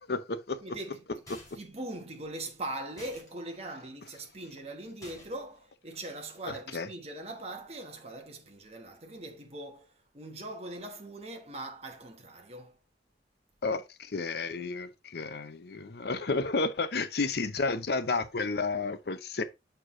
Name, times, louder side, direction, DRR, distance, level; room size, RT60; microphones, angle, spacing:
voice 1, 0.1-0.6 1.3-1.4 6.5-6.9 13.6-19.4, left 3 dB, 60° left, 0.7 m, -31 dB
voice 2, 0.6-1.0 1.5-12.8, right 2 dB, 35° right, 1.3 m, -41 dB
sound 1, 1.3-1.8 3.0-3.3 5.0-5.5, left 1 dB, 20° left, 2.8 m, -50 dB
6.5 x 4.6 x 3.7 m
head